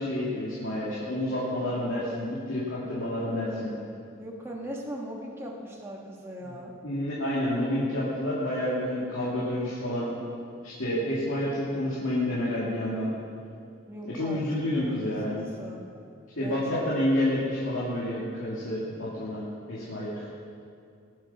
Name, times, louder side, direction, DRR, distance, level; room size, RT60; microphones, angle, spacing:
voice 1, 0.0-3.7 6.4-6.6 6.8-10.2 10.6-13.1 14.0-15.5 16.4-20.3, left 1 dB, 90° left, -8 dB, 2.4 m, -29 dB
voice 2, 4.2-6.7 13.9-14.4 14.7-15.2 15.6-15.8 16.4-16.6 17.0-17.1, equal, 15° right, -2 dB, 1.3 m, -39 dB
19.0 x 7.8 x 6.0 m, 2.4 s
head